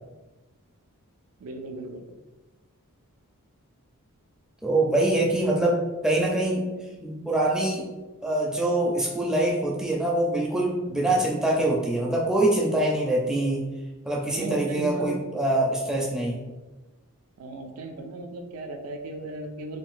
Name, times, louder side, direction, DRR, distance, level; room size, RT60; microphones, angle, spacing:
voice 1, 1.4-2.1 10.9-11.1 14.3-15.2 17.4-19.8, right 1 dB, 65° right, 4 dB, 0.4 m, -36 dB
voice 2, 4.6-6.6 6.9-7.9 8.2-13.7 14.0-16.5, right 1 dB, 5° right, -3 dB, 0.4 m, -24 dB
3.7 x 2.2 x 2.5 m, 1.2 s
head